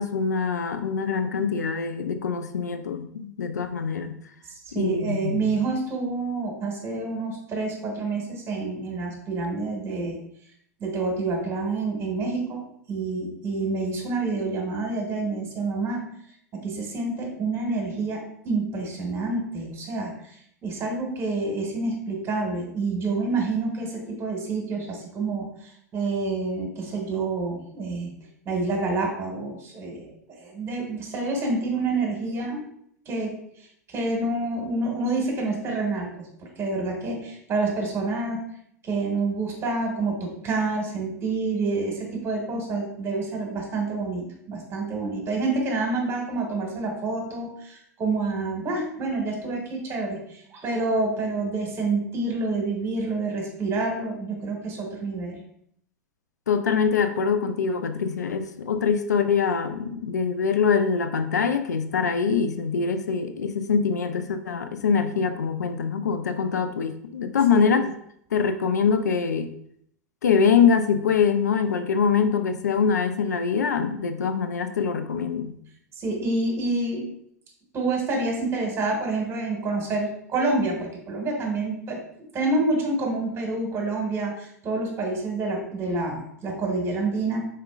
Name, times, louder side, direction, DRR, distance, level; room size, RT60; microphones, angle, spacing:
voice 1, 0.0-4.1 4.8-5.6 56.5-67.9 68.3-69.5 70.2-75.5, left 6 dB, 80° left, 9 dB, 0.4 m, -24 dB
voice 2, 4.7-10.2 10.8-12.6 12.9-16.0 16.6-28.1 28.5-32.6 33.1-33.3 33.9-38.4 38.8-55.4 67.5-67.8 76.0-77.1 77.7-82.0 82.3-87.5, right 3 dB, 30° right, 0 dB, 1.9 m, -28 dB
5.0 x 4.2 x 2.4 m, 0.69 s
hypercardioid pair, 95°, 9 cm